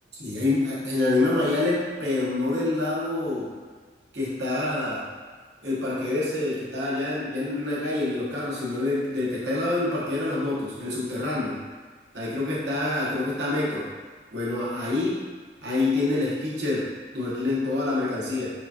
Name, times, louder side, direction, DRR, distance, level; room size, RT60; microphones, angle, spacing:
voice 1, 0.1-3.5 4.1-5.1 5.6-11.6 12.1-13.9 14.3-15.2 15.6-18.5, left 2 dB, 70° right, -7 dB, 1.1 m, -26 dB
4.9 x 2.4 x 2.8 m, 1.5 s
head